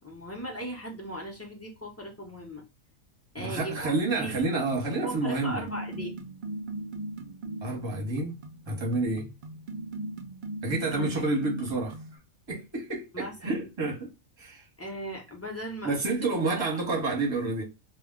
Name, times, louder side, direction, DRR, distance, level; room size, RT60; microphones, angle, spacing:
voice 1, 0.0-2.6 3.3-4.3 5.0-6.3 10.9-11.3 13.1-13.7 14.8-16.6, right 1 dB, 20° left, 0.4 m, -38 dB
voice 2, 3.4-5.6 7.6-8.4 8.7-9.3 10.6-11.9 12.5-14.1 14.4-14.6 15.8-17.6, right 3 dB, 25° right, 0.8 m, -29 dB
sound 1, 3.7-12.2, right 2 dB, 85° right, 0.4 m, -40 dB
2.3 x 2.1 x 3.5 m
omnidirectional pair, 1.4 m